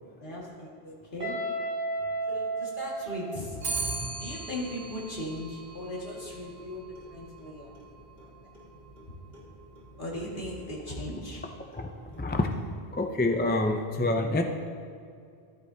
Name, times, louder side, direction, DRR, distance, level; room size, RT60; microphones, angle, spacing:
voice 1, 0.2-1.4 2.3-3.6 4.2-7.7 8.2-8.3 10.0-11.4, left 1 dB, 50° left, -5 dB, 2.3 m, -38 dB
Guitar, 1.2-4.0, right 2 dB, 35° right, 3.3 m, -33 dB
Clock, 3.6-13.0, right 3 dB, 60° right, 2.1 m, -41 dB
voice 2, 11.7-12.5 12.9-14.4, left 2 dB, 15° left, 3 dB, 0.4 m, -27 dB
13.5 x 12.0 x 2.8 m, 2.3 s
omnidirectional pair, 1.1 m